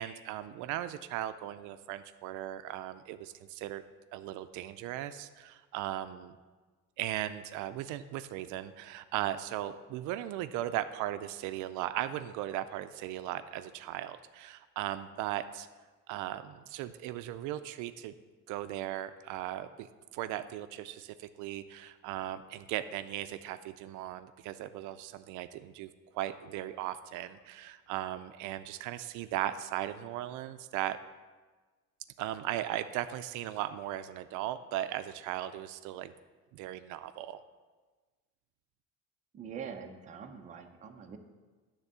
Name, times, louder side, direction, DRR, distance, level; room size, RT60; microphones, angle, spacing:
voice 1, 0.0-3.8 4.1-6.4 7.0-15.7 16.1-18.1 18.5-19.9 20.1-31.0 32.2-36.1 36.5-37.4, right 13 dB, 75° right, 11 dB, 0.4 m, -37 dB
voice 2, 39.3-41.2, right 7 dB, 25° right, 4 dB, 0.5 m, -44 dB
9.7 x 3.6 x 6.7 m, 1.3 s
cardioid pair, 170°, 30 cm